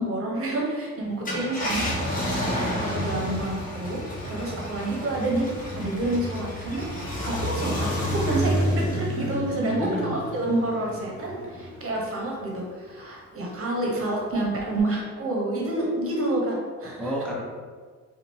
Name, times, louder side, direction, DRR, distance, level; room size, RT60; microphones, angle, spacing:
voice 1, 0.0-2.3 2.8-4.0 4.3-5.5 5.8-6.9 7.2-8.6 9.0-17.1, right 1 dB, 45° right, -2 dB, 1.0 m, -28 dB
Car, 1.1-11.9 12.4-12.5 14.6-14.8, equal, 25° left, 1.3 m, -30 dB
voice 2, 8.3-9.0 9.8-10.3 17.0-17.4, right 1 dB, 5° left, -5 dB, 0.8 m, -30 dB
4.1 x 2.5 x 3.1 m, 1.5 s
cardioid pair, 90°, 30 cm